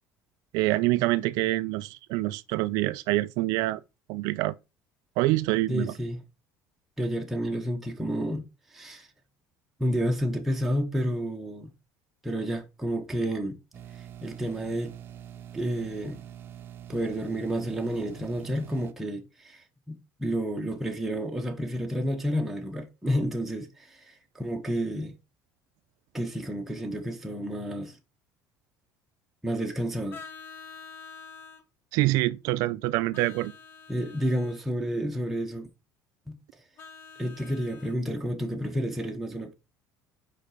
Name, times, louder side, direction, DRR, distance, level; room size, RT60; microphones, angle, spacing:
voice 1, 0.5-3.8 4.1-4.6 5.2-5.9 31.9-33.5, right 18 dB, 70° right, 0.5 m, -26 dB
voice 2, 5.7-6.2 7.0-8.4 8.7-9.1 9.8-11.7 12.2-13.6 13.9-15.0 15.5-16.2 16.9-25.1 26.1-28.0 29.4-30.2 33.9-35.7 36.3-36.4 37.2-39.5, equal, 5° right, 0.8 m, -30 dB
sound 1, 13.7-18.9, right 10 dB, 35° right, 0.7 m, -45 dB
Vehicle horn car horn honking, 30.1-31.6 33.1-34.6 36.8-38.0, left 5 dB, 35° left, 1.0 m, -46 dB
5.2 x 4.8 x 4.8 m
cardioid pair, 155°, 7 cm